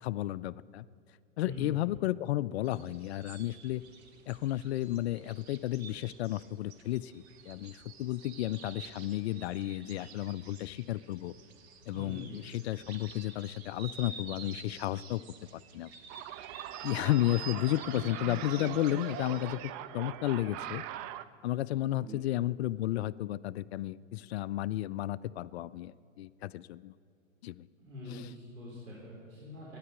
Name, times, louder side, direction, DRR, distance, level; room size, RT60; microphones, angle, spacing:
voice 1, 0.0-0.8 1.4-3.8 4.3-11.3 11.9-15.2 15.5-15.9 16.8-20.8 21.4-26.9 27.4-27.7 28.1-28.3, left 15 dB, 55° left, 18 dB, 0.4 m, -33 dB
sound 1, 2.6-19.6, right 5 dB, 55° right, 1.6 m, -51 dB
voice 2, 11.9-12.4 22.0-22.2 27.9-29.8, left 2 dB, 85° right, -6 dB, 4.2 m, -44 dB
sound 2, 16.1-21.2, right 12 dB, 30° right, 0.5 m, -41 dB
13.5 x 10.5 x 8.3 m, 2.2 s
hypercardioid pair, 105°, 39 cm